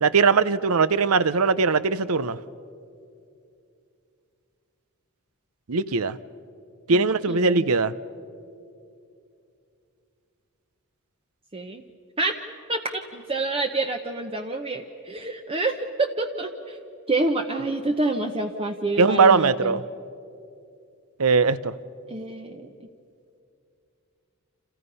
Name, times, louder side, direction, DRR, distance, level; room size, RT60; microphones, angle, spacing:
voice 1, 0.0-2.4 5.7-6.2 6.9-7.9 19.0-19.8 21.2-21.7, right 4 dB, 70° right, 16 dB, 0.7 m, -20 dB
voice 2, 6.9-7.7 11.5-11.8 12.2-12.3 12.7-16.8 17.1-19.8 22.1-22.6, right 2 dB, 25° right, 5 dB, 0.9 m, -28 dB
29.5 x 27.5 x 5.6 m, 2.5 s
head